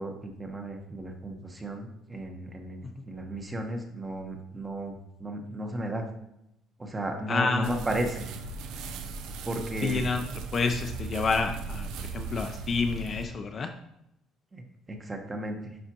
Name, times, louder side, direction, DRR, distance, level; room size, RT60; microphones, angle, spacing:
voice 1, 0.0-6.1 6.8-8.4 9.5-10.0 14.5-14.6 14.9-15.6, right 1 dB, 15° right, 3 dB, 1.0 m, -34 dB
voice 2, 7.3-7.7 9.8-10.2 10.5-13.7, left 4 dB, 30° left, 5 dB, 0.5 m, -28 dB
sound 1, 7.6-13.3, right 4 dB, 80° right, 0.7 m, -37 dB
10.5 x 4.9 x 2.9 m, 0.83 s
cardioid pair, 155°, 0 cm